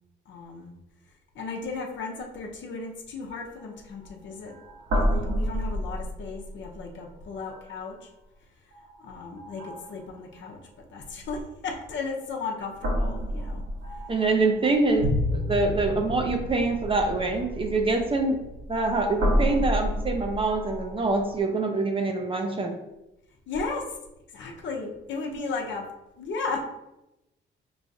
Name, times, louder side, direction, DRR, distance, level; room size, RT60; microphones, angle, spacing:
voice 1, 0.3-0.7 1.3-4.6 4.9-8.0 9.0-13.6 13.9-14.0 23.5-23.8 24.3-25.9 26.2-26.6, left 4 dB, 70° left, 1 dB, 0.8 m, -35 dB
sound 1, 3.6-3.7 4.0-4.2 4.5-6.8 7.3-7.9 8.7-9.0 9.4-10.2 11.7-12.2 12.8-21.4, equal, 70° right, 1.3 m, -30 dB
voice 2, 14.1-18.4 18.7-22.8, right 3 dB, 25° right, 4 dB, 0.6 m, -25 dB
4.5 x 3.1 x 2.7 m, 0.93 s
cardioid pair, 90°, 20 cm